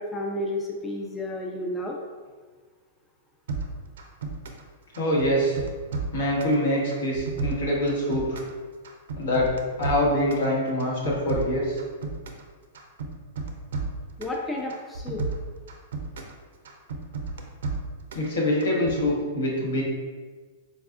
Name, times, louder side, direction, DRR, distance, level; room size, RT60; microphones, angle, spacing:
voice 1, 0.0-2.0 14.2-15.2, left 1 dB, 10° left, -1 dB, 0.3 m, -31 dB
sound 1, 3.5-4.7 4.9-6.6 6.9-8.6 8.8-10.5 10.8-12.5 12.7-14.4 14.7-16.3 16.6-18.3 18.6-19.1, right 4 dB, 80° right, 0.4 m, -33 dB
voice 2, 5.0-5.6 6.1-8.4 9.2-11.8 18.1-19.8, left 1 dB, 80° left, -4 dB, 1.0 m, -24 dB
4.0 x 2.3 x 2.3 m, 1.5 s
hypercardioid pair, 140°, 0 cm